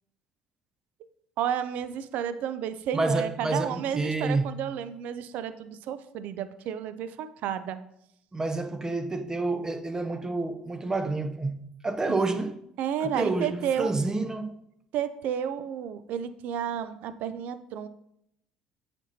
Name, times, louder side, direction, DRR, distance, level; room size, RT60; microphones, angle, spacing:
voice 1, 1.4-7.8 12.1-12.2 12.8-14.0 14.9-17.9, right 9 dB, 60° right, 0.4 m, -31 dB
voice 2, 2.9-4.6 8.3-12.6 13.0-14.6, right 3 dB, 20° right, 0.6 m, -29 dB
8.2 x 5.2 x 2.8 m
hypercardioid pair, 60°, 3 cm